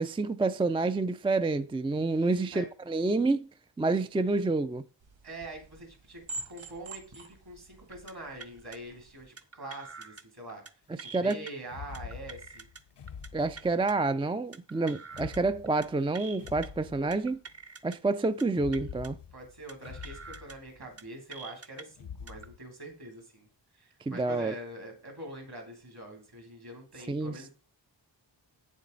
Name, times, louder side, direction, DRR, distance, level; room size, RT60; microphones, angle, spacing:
voice 1, 0.0-3.5 3.8-4.8 11.1-11.4 13.3-17.4 17.8-19.2 24.1-24.5 27.1-27.5, right 3 dB, 15° right, 0.3 m, -28 dB
voice 2, 2.1-2.7 5.2-10.6 11.0-12.7 19.3-23.5 23.7-27.5, right 1 dB, 55° right, 3.3 m, -44 dB
sound 1, 5.0-9.3, right 3 dB, 90° right, 1.0 m, -46 dB
sound 2, 7.9-8.1 8.4-8.8 9.4-10.2 10.5-10.7 11.0-11.5 11.9-12.8 13.1-13.3 13.6-13.9 14.5-15.4 15.7-15.9 16.1-16.7 17.1-18.0 18.2-18.4 18.7-19.1 19.7-20.5 20.8-21.0 21.3-21.8 22.3-22.5, right 4 dB, 35° right, 0.7 m, -46 dB
sound 3, 11.6-14.1 15.1-17.6 18.5-21.1 21.9-22.6, left 7 dB, 65° left, 0.7 m, -46 dB
8.4 x 7.2 x 3.9 m
wide cardioid pair, 85°, 44 cm